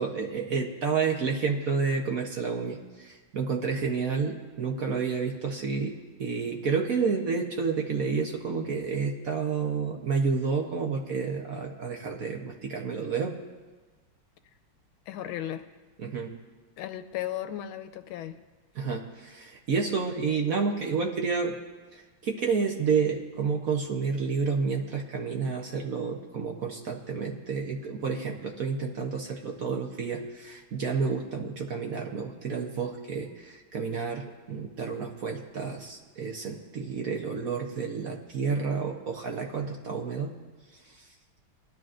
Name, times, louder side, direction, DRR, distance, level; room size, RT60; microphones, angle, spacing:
voice 1, 0.0-13.4 16.0-16.3 18.7-21.6 21.9-40.3 40.8-41.1, right 5 dB, 55° right, 1 dB, 1.1 m, -30 dB
voice 2, 15.1-15.6 16.8-18.4, left 12 dB, 90° left, 9 dB, 1.5 m, -35 dB
21.0 x 12.0 x 2.5 m, 1.3 s
omnidirectional pair, 2.2 m